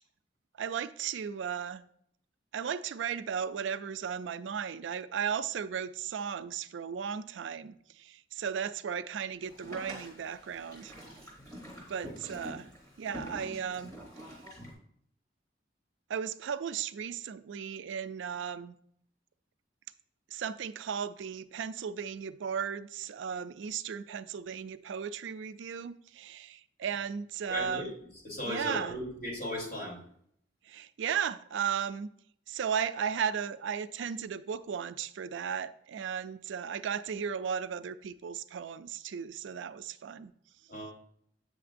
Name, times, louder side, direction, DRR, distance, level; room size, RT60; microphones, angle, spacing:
voice 1, 0.6-1.8 2.5-10.9 11.9-12.7 13.0-13.9 16.1-18.8 20.3-27.9 28.4-29.0 30.6-32.1 32.5-40.3, right 7 dB, 80° right, 0.4 m, -35 dB
Boat Water vehicle, 9.4-14.7, equal, 20° left, 3.1 m, -46 dB
voice 2, 27.5-27.9 28.2-30.0 40.7-40.9, equal, 50° left, 3.0 m, -36 dB
8.6 x 6.5 x 2.5 m
head